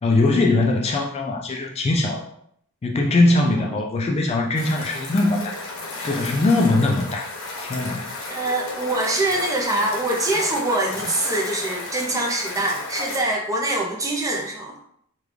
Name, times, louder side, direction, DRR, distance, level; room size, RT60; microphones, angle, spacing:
voice 1, 0.0-2.2 2.8-5.5 6.0-8.1, left 2 dB, 30° left, 1 dB, 0.3 m, -21 dB
sound 1, 4.6-13.2, left 2 dB, 75° left, 0.9 m, -33 dB
voice 2, 8.3-14.7, right 2 dB, 15° right, -1 dB, 0.6 m, -24 dB
3.6 x 2.3 x 3.2 m, 0.68 s
head